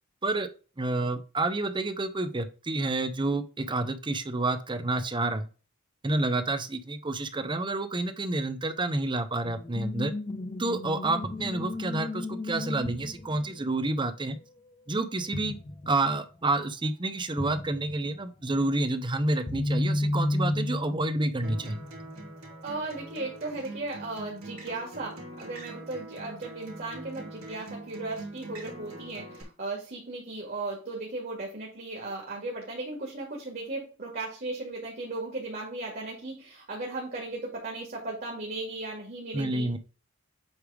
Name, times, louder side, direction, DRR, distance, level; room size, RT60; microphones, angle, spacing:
voice 1, 0.8-5.5 6.0-10.1 10.6-14.4 14.9-15.6 15.9-21.8 39.3-39.8, right 2 dB, 25° right, 10 dB, 0.7 m, -29 dB
sound 1, 9.4-15.0 15.3-16.1 16.3-16.4 17.4-18.1 18.9-22.3 23.0-23.5, left 1 dB, 25° left, 0.4 m, -33 dB
Acoustic guitar, 21.4-29.4, right 1 dB, 90° right, 2.8 m, -43 dB
voice 2, 22.6-39.7, right 2 dB, 45° right, -2 dB, 2.1 m, -36 dB
8.0 x 3.4 x 4.9 m, 0.36 s
head